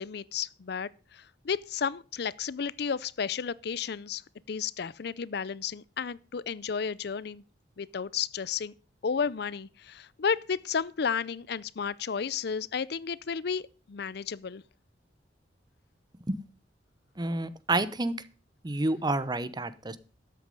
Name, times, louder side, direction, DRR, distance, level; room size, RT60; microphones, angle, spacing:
voice 1, 0.0-4.2 4.5-7.4 7.8-8.7 9.0-14.6, left 6 dB, 60° left, 0.5 m, -32 dB
voice 2, 17.2-18.1 18.6-20.0, right 2 dB, 25° right, 0.7 m, -29 dB
13.0 x 8.3 x 5.3 m
head